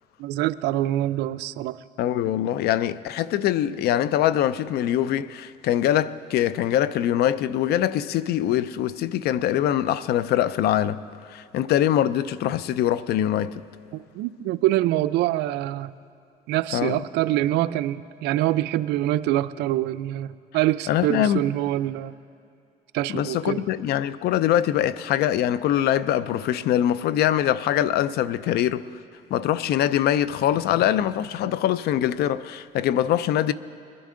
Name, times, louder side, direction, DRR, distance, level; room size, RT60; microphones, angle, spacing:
voice 1, 0.2-1.8 13.9-15.9 16.5-22.1 22.9-23.6, right 14 dB, 85° right, 0.4 m, -25 dB
voice 2, 2.0-11.0 11.3-13.6 16.7-17.0 20.9-21.4 23.1-28.8 29.3-33.5, left 11 dB, 70° left, 0.4 m, -23 dB
21.5 x 11.0 x 3.8 m
cardioid pair, 110°, 17 cm